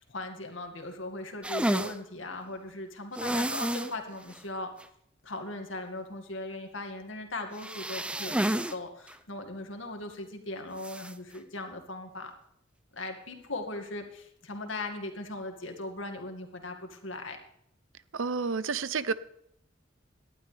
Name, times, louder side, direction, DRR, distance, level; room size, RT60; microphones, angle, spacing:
voice 1, 0.0-4.7 5.2-12.3 12.9-17.4, left 2 dB, 80° left, 4 dB, 2.2 m, -39 dB
sound 1, 1.4-2.0 3.1-3.9 4.3-4.4 4.8-4.9 7.5-8.7 9.1-9.2 10.8-11.1, right 1 dB, 5° right, 0.4 m, -30 dB
voice 2, 18.1-19.1, right 5 dB, 85° right, 16 dB, 0.7 m, -30 dB
18.0 x 12.0 x 3.4 m, 0.72 s
head